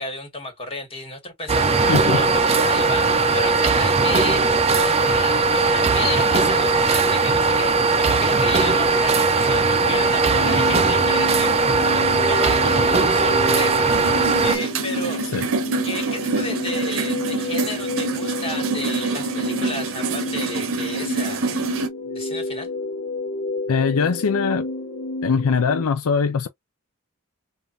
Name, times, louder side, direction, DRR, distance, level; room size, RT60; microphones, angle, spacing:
voice 1, 0.0-12.0 12.3-13.9 14.4-15.2 15.8-21.5 22.0-22.7, left 2 dB, 25° left, 1.9 m, -32 dB
sound 1, 1.5-14.6, right 4 dB, 30° right, 0.6 m, -19 dB
voice 2, 1.9-2.2 15.3-15.4 23.7-24.7 25.2-26.5, left 5 dB, 70° left, 0.5 m, -21 dB
sound 2, 9.7-25.8, left 2 dB, 55° left, 0.9 m, -31 dB
sound 3, 13.9-21.9, right 3 dB, 65° right, 0.8 m, -26 dB
5.2 x 2.6 x 2.6 m
head